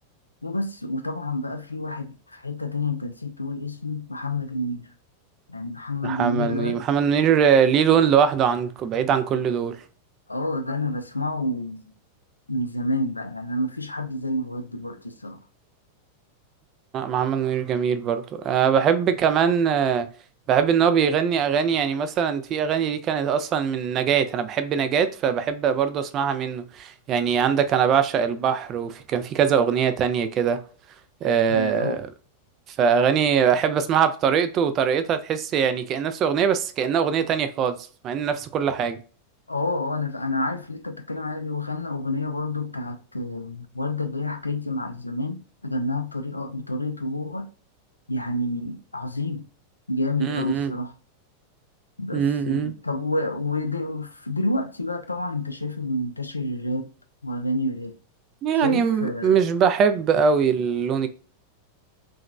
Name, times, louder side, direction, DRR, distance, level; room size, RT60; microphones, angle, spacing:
voice 1, 0.4-4.9 5.5-6.8 10.3-11.9 12.5-15.4 31.5-32.0 39.5-47.5 48.1-49.5 49.9-51.0 52.0-56.9 57.2-58.0 58.5-59.4, left 1 dB, 80° left, 0.3 m, -29 dB
voice 2, 6.0-9.8 16.9-20.1 20.5-30.6 31.2-32.0 32.8-37.8 38.0-39.0 50.2-50.7 52.1-52.7 58.4-61.1, right 7 dB, 30° right, 0.3 m, -22 dB
2.8 x 2.3 x 2.3 m
figure-of-eight pair, 90°, 0 cm